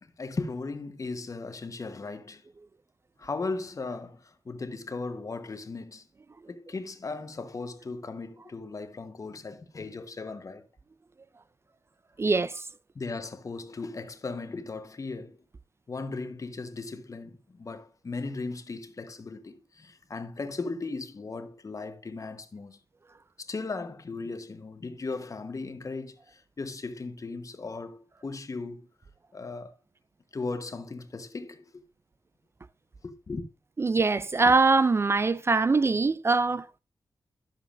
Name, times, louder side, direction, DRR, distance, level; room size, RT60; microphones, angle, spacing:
voice 1, 0.0-2.4 3.2-6.1 6.5-10.7 12.9-15.4 15.9-22.8 23.4-28.9 29.3-29.8 30.3-31.9 33.0-33.5, left 3 dB, 45° left, 1.0 m, -37 dB
voice 2, 12.2-12.6 33.8-36.7, right 3 dB, 30° right, 0.3 m, -23 dB
10.5 x 7.2 x 2.5 m
cardioid pair, 75°, 8 cm